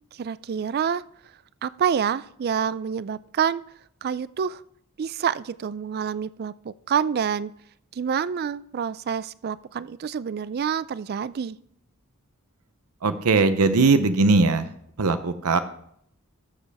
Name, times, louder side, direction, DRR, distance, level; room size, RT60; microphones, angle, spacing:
voice 1, 0.2-1.0 1.6-3.6 4.0-4.6 5.0-7.5 8.0-11.6, right 7 dB, 45° right, 18 dB, 0.3 m, -27 dB
voice 2, 13.0-14.7 15.0-15.6, right 3 dB, 85° right, 10 dB, 0.7 m, -20 dB
13.0 x 7.5 x 3.5 m, 0.69 s
head